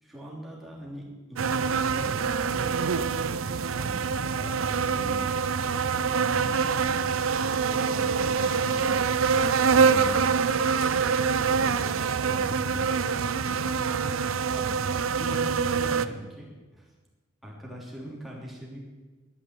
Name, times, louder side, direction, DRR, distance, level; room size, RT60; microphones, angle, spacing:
voice 1, 0.0-2.8 3.5-5.4 5.9-6.9 7.6-9.0 9.5-16.9 17.4-18.8, right 1 dB, ahead, -4 dB, 3.5 m, -42 dB
sound 1, 1.4-16.1, right 5 dB, 75° right, 0.6 m, -25 dB
Water on Carpet, 5.3-11.8, equal, 20° left, 3.8 m, -48 dB
12.5 x 10.0 x 8.3 m, 1.2 s
head